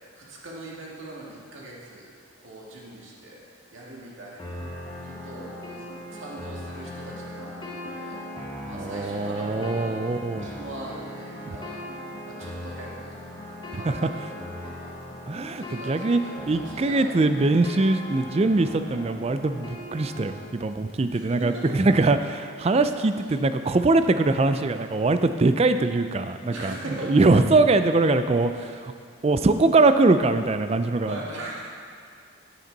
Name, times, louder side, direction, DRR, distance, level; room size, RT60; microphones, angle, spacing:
voice 1, 0.1-2.1 2.4-3.4 3.7-4.6 5.0-5.8 6.1-8.2 8.7-10.2 10.4-11.9 12.2-13.3 13.7-15.0 15.5-17.5 21.1-22.0 26.5-27.4 28.4-28.8 31.1-31.7, right 1 dB, 65° right, -4 dB, 2.1 m, -41 dB
sound 1, 4.4-20.4, left 1 dB, 20° left, 1.1 m, -38 dB
voice 2, 8.7-10.5 13.7-14.1 15.3-16.2 16.5-28.9 29.2-31.2, right 3 dB, 30° right, 9 dB, 0.4 m, -22 dB
10.5 x 10.5 x 4.0 m, 2.2 s
head